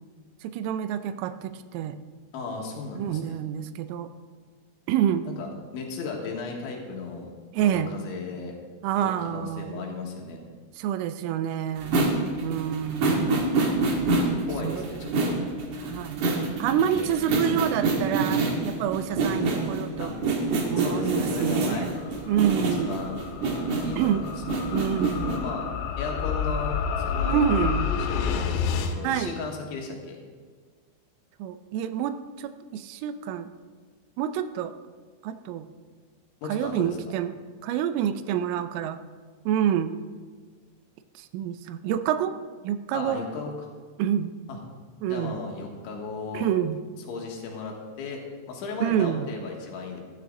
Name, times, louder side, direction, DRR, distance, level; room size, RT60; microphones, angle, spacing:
voice 1, 0.4-2.0 3.0-4.1 4.9-5.3 7.5-7.9 8.8-9.9 10.8-12.0 12.4-13.5 14.6-15.2 15.8-16.2 16.6-20.1 20.7-21.9 22.3-23.0 24.0-24.2 24.7-25.4 27.3-27.9 29.0-29.3 31.4-33.5 34.2-34.7 35.2-35.7 36.5-37.3 37.6-39.0 39.5-39.9 41.2-42.4 42.6-43.2 44.0-44.3 45.0-45.4 46.3-46.8 48.8-49.3, right 10 dB, 85° right, 11 dB, 3.2 m, -27 dB
voice 2, 2.3-3.4 5.3-5.5 5.7-8.6 9.0-10.4 14.5-15.4 16.7-17.6 20.0-20.2 20.8-21.9 22.9-23.3 23.8-24.3 25.2-25.7 26.0-26.8 27.1-27.5 28.0-30.2 36.4-37.0 42.9-43.5 45.1-46.5 47.1-48.2 48.5-50.0, left 4 dB, 75° left, 0 dB, 3.9 m, -35 dB
sound 1, 11.8-25.4, right 3 dB, 65° right, 2.1 m, -27 dB
sound 2, 21.1-28.9, left 6 dB, 90° left, 3.7 m, -30 dB
14.0 x 13.0 x 3.8 m, 1.5 s
omnidirectional pair, 5.7 m